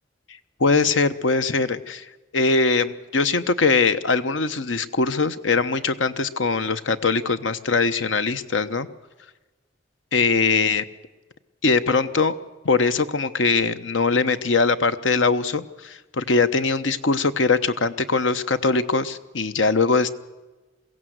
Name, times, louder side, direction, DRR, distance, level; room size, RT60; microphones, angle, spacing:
voice 1, 0.6-2.1 2.3-8.9 10.1-10.8 11.6-12.3 12.6-20.1, left 4 dB, 85° left, 12 dB, 1.0 m, -21 dB
22.0 x 16.0 x 7.9 m, 1.2 s
head